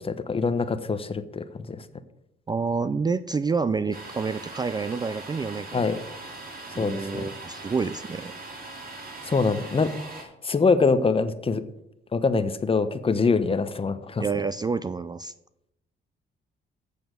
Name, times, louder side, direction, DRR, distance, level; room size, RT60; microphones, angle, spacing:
voice 1, 0.0-1.8 5.7-6.0 6.7-7.3 9.2-9.9 10.2-11.6 12.1-14.2, left 4 dB, 30° left, 12 dB, 0.8 m, -24 dB
voice 2, 2.5-5.8 6.7-8.3 14.2-15.3, right 5 dB, 20° right, 14 dB, 0.3 m, -28 dB
Domestic sounds home sounds, 3.9-10.2, right 3 dB, 45° right, 2.9 m, -41 dB
8.1 x 6.9 x 6.5 m, 0.83 s
cardioid pair, 90°, 20 cm